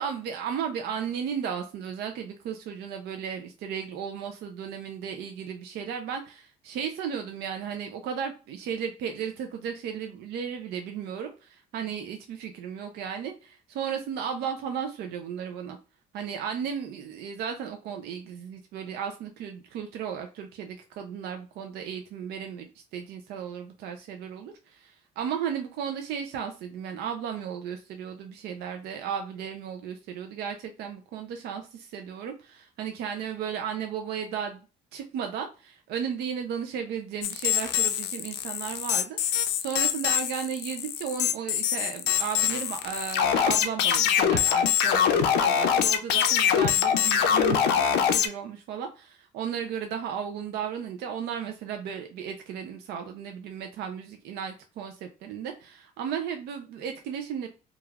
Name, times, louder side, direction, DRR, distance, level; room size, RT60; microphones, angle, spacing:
voice 1, 0.0-15.8 16.1-34.6 34.9-57.5, right 7 dB, 75° right, 0.5 m, -35 dB
sound 1, 37.2-48.3, left 8 dB, 90° left, 0.4 m, -24 dB
3.1 x 2.4 x 2.3 m
cardioid pair, 110°, 17 cm